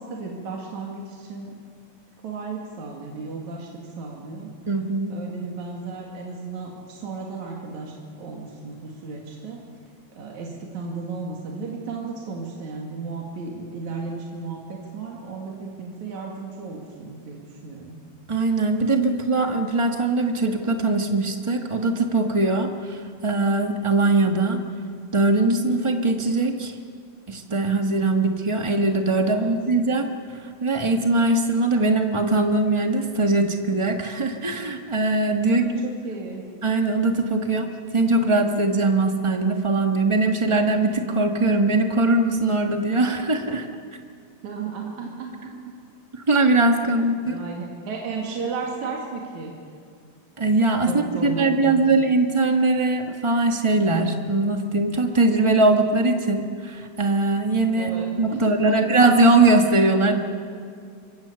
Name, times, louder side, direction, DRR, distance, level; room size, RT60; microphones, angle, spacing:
voice 1, 0.0-1.5 2.2-4.5 5.1-9.6 10.2-18.0 29.3-29.5 35.5-36.4 44.4-45.7 46.8-49.5 50.8-51.8 57.8-58.8, right 4 dB, 70° right, -1 dB, 3.7 m, -34 dB
voice 2, 4.7-5.1 18.3-24.6 25.1-26.7 27.3-30.1 30.6-35.8 36.6-37.7 37.9-43.7 46.1-47.3 50.4-50.9 51.2-57.9 58.2-60.2, right 2 dB, 40° right, 3 dB, 0.4 m, -21 dB
26.0 x 23.5 x 7.0 m, 2.2 s
omnidirectional pair, 3.4 m